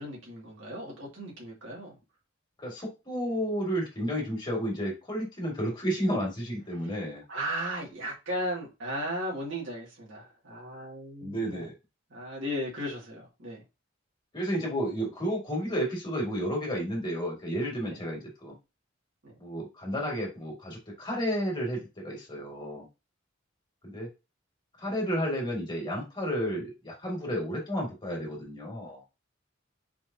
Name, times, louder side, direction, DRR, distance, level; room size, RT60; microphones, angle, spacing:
voice 1, 0.0-2.0 6.7-7.0 7.3-11.7 12.1-13.6 17.9-18.0 19.2-19.3, equal, 75° right, 2.3 m, -36 dB
voice 2, 2.6-7.2 11.2-11.7 14.3-18.5 19.4-22.9 23.8-24.1 24.8-29.0, equal, 25° left, 2.0 m, -32 dB
4.8 x 3.5 x 2.7 m
head